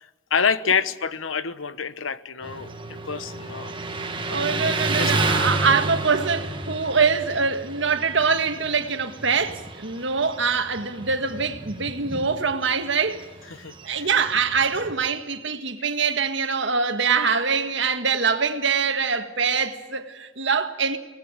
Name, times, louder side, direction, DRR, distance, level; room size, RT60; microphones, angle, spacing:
voice 1, 0.0-4.1 5.0-5.3 13.5-14.1, left 6 dB, 75° left, 1.0 m, -28 dB
Motorcycle, 2.4-15.0, right 3 dB, 25° right, 1.5 m, -31 dB
voice 2, 4.3-13.3 13.8-21.0, right 5 dB, 60° right, 1.7 m, -24 dB
24.0 x 19.0 x 9.0 m
head